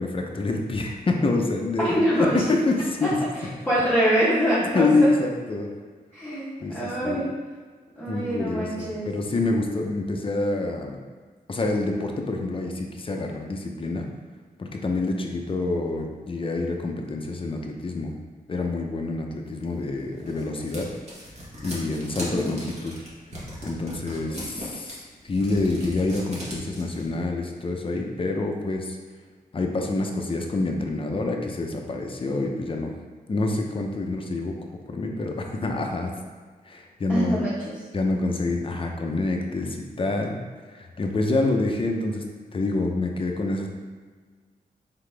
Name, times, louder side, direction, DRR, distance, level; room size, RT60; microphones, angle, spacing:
voice 1, 0.0-3.2 4.7-5.7 6.6-7.3 8.1-11.0 11.5-14.1 14.6-18.2 18.5-20.9 21.6-22.9 23.6-29.0 29.5-32.9 33.3-34.6 34.9-36.1 36.6-37.4 37.9-40.4 40.7-42.2 42.5-43.7, left 2 dB, 35° left, 2 dB, 0.6 m, -27 dB
voice 2, 1.8-2.4 3.0-3.1 3.7-5.1 6.1-7.3 7.9-9.1 22.2-22.5 37.1-37.7, equal, 10° left, -11 dB, 1.1 m, -24 dB
sound 1, 19.8-27.0, equal, 45° right, 1.4 m, -38 dB
4.0 x 3.7 x 3.3 m, 1.5 s
cardioid pair, 80°, 16 cm